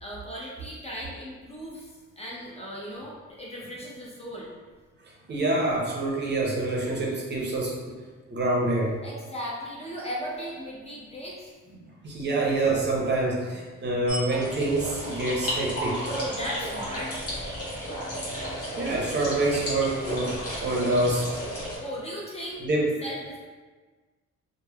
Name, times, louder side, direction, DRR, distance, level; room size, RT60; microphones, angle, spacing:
voice 1, 0.0-1.9 2.2-4.5 9.0-11.5 16.0-17.3 21.8-22.6 23.0-23.4, equal, 20° left, -5 dB, 0.5 m, -36 dB
voice 2, 5.3-7.9 8.3-9.0 12.0-16.0 18.8-21.4 22.6-22.9, right 2 dB, 35° right, -3 dB, 0.6 m, -26 dB
sound 1, 14.1-21.8, equal, 50° left, 1.0 m, -33 dB
3.0 x 2.0 x 2.3 m, 1.4 s
cardioid pair, 110°, 30 cm